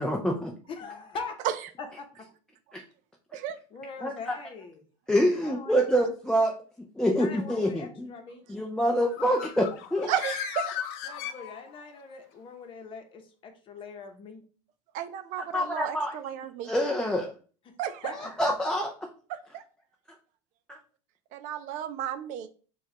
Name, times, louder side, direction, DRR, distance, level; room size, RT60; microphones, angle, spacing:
voice 1, 0.0-0.5 2.7-2.8 4.0-4.4 5.1-6.5 6.8-8.1 8.5-10.1 15.5-16.2 16.6-17.3 18.1-18.9 20.7-20.8, equal, 5° left, 0.4 m, -26 dB
voice 2, 0.7-1.4 1.8-2.3 3.7-4.8 5.4-5.9 7.0-8.4 11.0-14.4 17.7-17.8 18.0-18.3, left 4 dB, 35° left, 0.9 m, -42 dB
Bird, 8.9-12.0, left 9 dB, 70° left, 0.6 m, -36 dB
voice 3, 10.1-10.7 14.9-16.7 17.8-18.1 19.3-19.6 21.3-22.5, right 10 dB, 55° right, 0.5 m, -33 dB
4.5 x 2.4 x 4.5 m
supercardioid pair, 130°, 15 cm